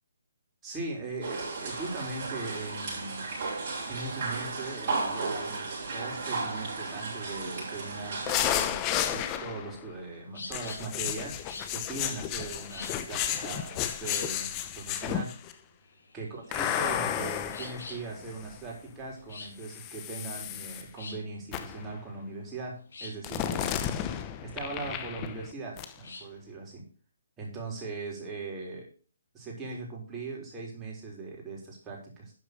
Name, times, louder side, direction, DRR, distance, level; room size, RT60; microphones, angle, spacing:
voice 1, 0.6-3.2 3.9-11.4 11.7-14.5 14.7-15.4 16.1-23.9 24.4-26.8 27.4-28.9 29.3-32.3, right 3 dB, 15° right, -2 dB, 3.9 m, -39 dB
sound 1, 1.2-8.3, right 3 dB, 45° right, 5.3 m, -34 dB
sound 2, 8.3-9.8 10.5-15.5 16.5-18.7 19.6-20.8 21.5-21.9 23.2-25.5 25.8-25.9, left 10 dB, 20° left, 0.9 m, -32 dB
sound 3, 9.6-26.4, left 3 dB, 70° left, 5.2 m, -48 dB
11.5 x 4.9 x 6.7 m, 0.39 s
hypercardioid pair, 150°, 0 cm